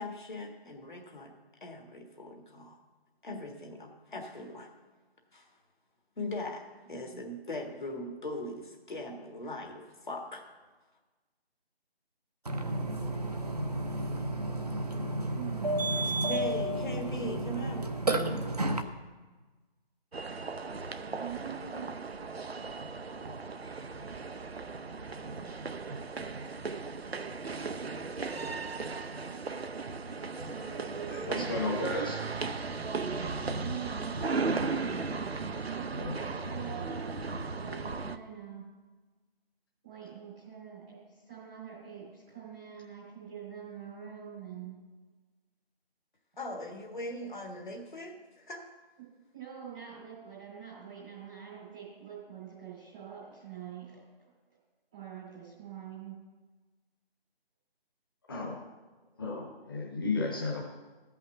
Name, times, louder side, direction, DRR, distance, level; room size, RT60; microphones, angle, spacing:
voice 1, 0.0-1.3 1.6-2.8 3.2-4.7 5.3-5.5 6.2-10.4 16.3-17.9 46.4-48.7, left 1 dB, 50° left, 2 dB, 1.7 m, -40 dB
voice 2, 6.8-7.2 15.3-16.4 18.3-18.4 21.2-21.9 30.4-31.4 33.4-34.7 35.6-38.6 39.8-44.8 49.3-54.0 54.9-56.1, right 9 dB, 5° right, -11 dB, 0.9 m, -45 dB
Burping eructation, 12.5-18.8, right 1 dB, 40° right, 0.6 m, -31 dB
sound 1, 20.1-38.2, right 4 dB, 75° right, 0.7 m, -36 dB
voice 3, 31.1-32.2 36.0-36.1 58.3-58.5 59.2-60.6, left 2 dB, 20° left, -2 dB, 1.2 m, -33 dB
13.5 x 5.8 x 7.0 m, 1.3 s
figure-of-eight pair, 160°, 31 cm